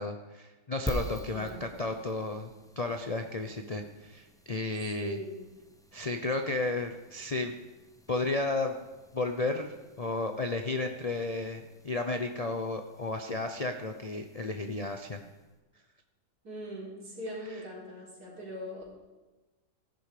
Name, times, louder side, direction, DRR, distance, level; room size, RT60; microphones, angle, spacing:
voice 1, 0.0-5.2 5.9-7.5 8.1-8.8 9.1-15.2, left 2 dB, 65° left, 5 dB, 0.3 m, -33 dB
sound 1, 0.9-15.6, equal, 5° left, 0.5 m, -46 dB
voice 2, 1.3-1.6 5.0-5.4 16.4-18.9, equal, 60° right, -5 dB, 4.7 m, -41 dB
15.0 x 11.5 x 5.0 m, 1.2 s
omnidirectional pair, 1.9 m